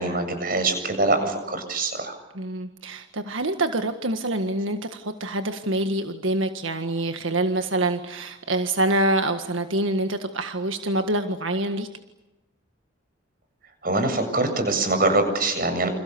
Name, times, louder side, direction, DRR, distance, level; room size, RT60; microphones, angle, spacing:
voice 1, 0.0-2.2 13.8-15.9, right 2 dB, 45° right, 8 dB, 7.6 m, -23 dB
voice 2, 2.3-11.9, right 1 dB, 85° right, 7 dB, 1.7 m, -26 dB
29.0 x 28.0 x 7.0 m, 1.0 s
head